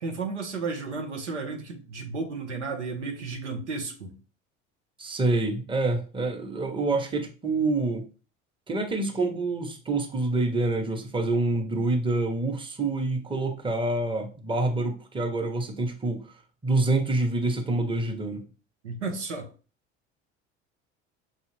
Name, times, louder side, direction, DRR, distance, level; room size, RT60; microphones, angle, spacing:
voice 1, 0.0-4.1 18.8-19.5, right 4 dB, 90° right, 0.9 m, -33 dB
voice 2, 5.0-8.0 8.7-16.2 16.6-18.4, right 2 dB, 15° right, 0.9 m, -27 dB
5.7 x 2.4 x 3.2 m
hypercardioid pair, 65°, 34 cm